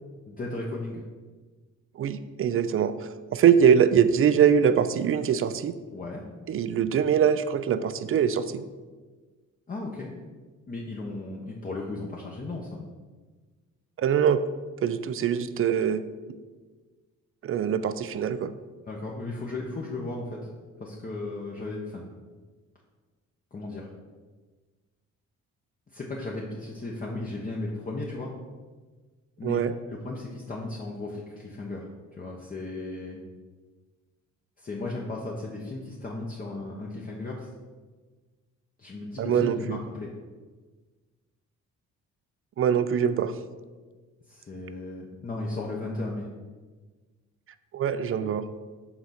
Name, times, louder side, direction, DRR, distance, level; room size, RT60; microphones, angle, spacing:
voice 1, 0.3-1.0 5.9-6.2 9.7-10.1 10.7-12.8 18.9-20.5 20.8-22.1 23.5-23.9 25.9-28.3 29.4-29.6 29.9-31.8 32.2-33.2 34.6-37.5 38.8-40.1 44.3-46.3, left 2 dB, 30° left, -3 dB, 0.9 m, -35 dB
voice 2, 2.0-5.7 6.5-8.7 14.0-14.4 14.8-16.0 17.4-18.5 29.4-29.7 39.2-39.8 42.6-43.3 47.7-48.4, right 8 dB, 45° right, 13 dB, 0.5 m, -23 dB
5.9 x 3.9 x 5.8 m, 1.4 s
cardioid pair, 90°, 30 cm